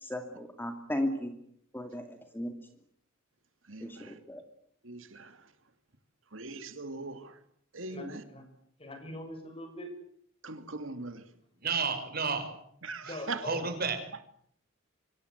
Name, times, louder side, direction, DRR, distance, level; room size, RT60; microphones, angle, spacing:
voice 1, 0.0-1.4 1.7-2.6 3.8-4.4, left 1 dB, 10° left, 5 dB, 2.4 m, -35 dB
voice 2, 3.7-4.2 4.8-5.4 6.3-7.4 7.7-8.2 10.4-11.2 12.8-13.4, right 3 dB, 70° right, 8 dB, 2.6 m, -40 dB
voice 3, 7.9-8.5 8.8-10.0 13.0-13.7, left 1 dB, 30° left, 7 dB, 7.0 m, -42 dB
voice 4, 11.6-12.5 13.0-13.1 13.4-14.0, right 4 dB, 45° right, 9 dB, 5.5 m, -31 dB
26.0 x 25.5 x 8.1 m, 0.68 s
head